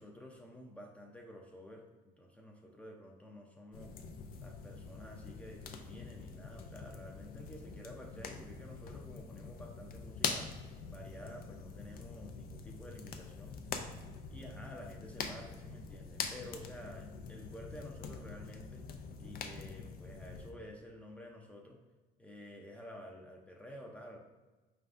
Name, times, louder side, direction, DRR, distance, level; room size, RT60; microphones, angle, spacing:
voice 1, 0.0-3.9 4.4-13.6 14.3-21.8 22.2-24.2, left 1 dB, 10° left, 0 dB, 0.5 m, -51 dB
sound 1, 3.7-20.5, left 5 dB, 60° left, 0.4 m, -44 dB
4.5 x 3.4 x 2.5 m, 1.2 s
cardioid pair, 110°, 17 cm